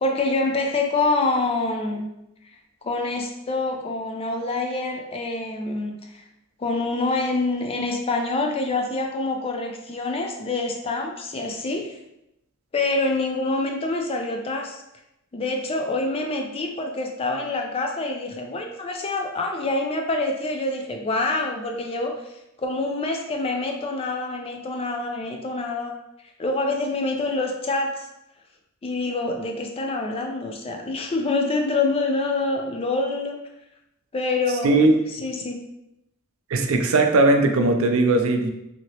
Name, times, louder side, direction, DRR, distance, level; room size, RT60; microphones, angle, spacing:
voice 1, 0.0-2.1 2.8-6.2 6.6-12.0 12.7-14.8 15.3-22.2 22.6-26.0 26.4-28.1 28.8-33.4 34.1-34.8 35.1-35.7, left 2 dB, 25° left, 3 dB, 0.3 m, -26 dB
voice 2, 34.6-35.0 36.5-38.5, right 2 dB, 70° right, 5 dB, 0.4 m, -18 dB
2.9 x 2.7 x 2.8 m, 0.86 s
head